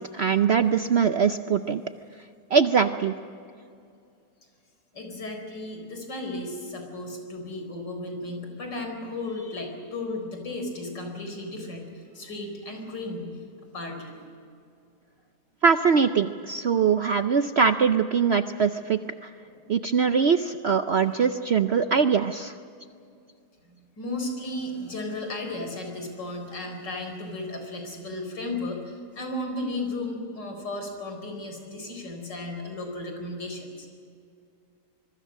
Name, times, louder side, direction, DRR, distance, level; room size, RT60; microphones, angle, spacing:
voice 1, 0.0-1.8 2.5-3.1 15.6-19.3 19.7-22.6, right 6 dB, 65° right, 9 dB, 0.6 m, -22 dB
voice 2, 4.9-13.4 13.7-14.1 19.4-19.5 21.1-21.2 23.6-33.9, left 2 dB, 90° left, 4 dB, 5.0 m, -35 dB
25.0 x 23.0 x 6.4 m, 2.5 s
omnidirectional pair, 1.8 m